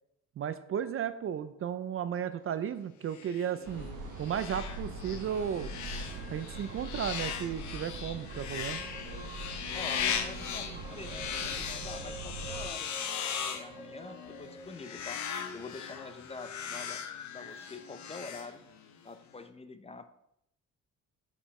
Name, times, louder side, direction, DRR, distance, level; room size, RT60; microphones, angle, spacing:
voice 1, 0.4-3.9 4.2-5.7 6.3-8.8, right 8 dB, 45° right, 12 dB, 0.4 m, -34 dB
sound 1, 3.1-19.0, left 8 dB, 70° left, 0.8 m, -39 dB
sound 2, 3.6-12.7, right 3 dB, 75° right, 1.0 m, -42 dB
sound 3, 6.0-7.4 7.9-8.0 8.3-9.5 9.8-15.0, right 2 dB, 30° right, 1.9 m, -49 dB
voice 2, 9.7-12.9 13.4-15.2 15.5-17.0 17.3-18.6 19.0-20.1, left 3 dB, 20° left, 9 dB, 0.5 m, -46 dB
5.3 x 5.1 x 4.3 m, 0.78 s
cardioid pair, 90°, 30 cm